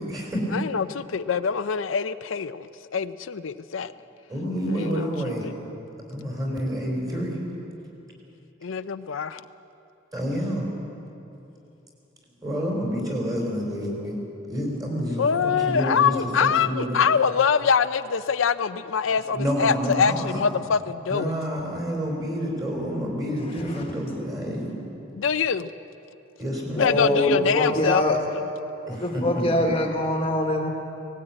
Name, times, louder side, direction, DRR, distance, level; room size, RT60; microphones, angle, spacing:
voice 1, 0.0-0.6 4.3-5.5 6.1-7.4 10.1-10.7 12.4-14.2 14.5-16.1 16.4-17.0 19.3-20.4 21.1-24.8 26.4-27.0 28.9-29.7, equal, 20° right, 0 dB, 4.3 m, -28 dB
voice 2, 0.5-3.9 4.7-5.5 8.6-9.4 15.1-21.3 25.1-25.7 26.8-28.0 28.3-28.4, left 6 dB, 80° left, 12 dB, 0.5 m, -24 dB
voice 3, 26.8-28.2 28.9-30.7, left 1 dB, 30° left, 2 dB, 1.4 m, -23 dB
18.5 x 17.5 x 8.8 m, 2.9 s
head